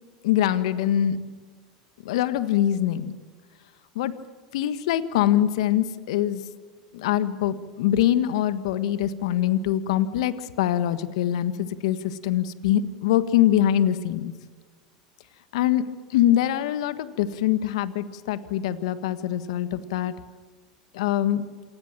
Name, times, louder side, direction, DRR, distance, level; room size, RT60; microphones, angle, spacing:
voice 1, 0.2-1.2 2.0-3.1 3.9-4.1 4.5-6.4 6.9-14.3 15.5-15.8 16.1-20.1 20.9-21.4, left 11 dB, 75° left, 13 dB, 1.5 m, -23 dB
27.5 x 19.5 x 7.5 m, 1.5 s
hypercardioid pair, 85°, 3 cm